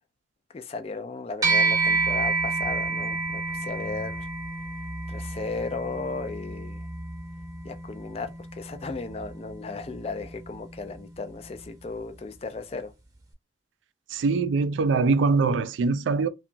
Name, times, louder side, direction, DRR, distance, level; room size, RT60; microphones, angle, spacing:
voice 1, 0.5-4.3 5.1-6.8 7.6-12.9, left 3 dB, 35° left, 0.4 m, -35 dB
sound 1, 1.4-11.0, right 3 dB, 20° right, 0.7 m, -30 dB
voice 2, 14.1-16.3, right 4 dB, 85° right, 0.3 m, -23 dB
2.8 x 2.3 x 2.5 m
head